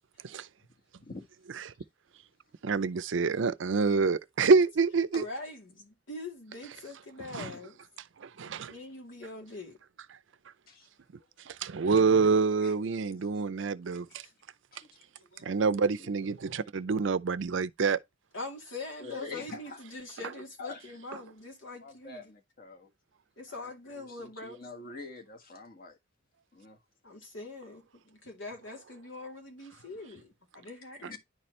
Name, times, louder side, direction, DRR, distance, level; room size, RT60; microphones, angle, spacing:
voice 1, 2.6-5.3 7.3-7.4 8.2-8.7 11.5-14.1 15.4-18.0, right 4 dB, 70° right, 0.5 m, -26 dB
voice 2, 5.1-7.7 8.4-9.8 14.2-14.3 18.3-22.2 23.4-24.6 24.9-25.0 27.0-31.2, left 2 dB, 90° left, 2.7 m, -43 dB
voice 3, 14.7-15.6 16.0-16.3 19.0-19.8 20.6-21.0 21.8-22.9 23.5-26.0 26.5-26.8 31.0-31.2, left 3 dB, 50° left, 1.4 m, -46 dB
10.5 x 4.3 x 3.1 m
head